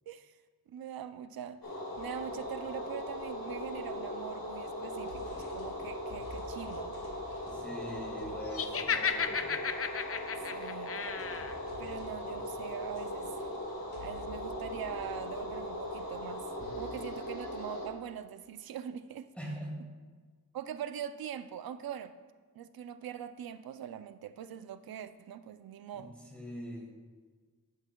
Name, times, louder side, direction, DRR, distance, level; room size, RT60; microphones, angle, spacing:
voice 1, 0.7-1.6 2.0-7.0 10.3-11.2 11.8-13.4 14.0-19.3 20.5-22.1 22.6-26.1, right 9 dB, 70° right, 12 dB, 0.5 m, -42 dB
sound 1, 1.6-17.9, left 1 dB, 65° left, 2.0 m, -39 dB
sound 2, 1.9-4.2 4.6-17.6, left 1 dB, 85° left, 2.3 m, -55 dB
voice 2, 7.5-9.5 19.4-19.8 25.9-26.9, equal, 5° left, -3 dB, 1.5 m, -43 dB
Laughter, 8.5-11.5, left 6 dB, 40° left, 0.4 m, -33 dB
11.5 x 7.2 x 2.3 m, 1.5 s
wide cardioid pair, 105°, 37 cm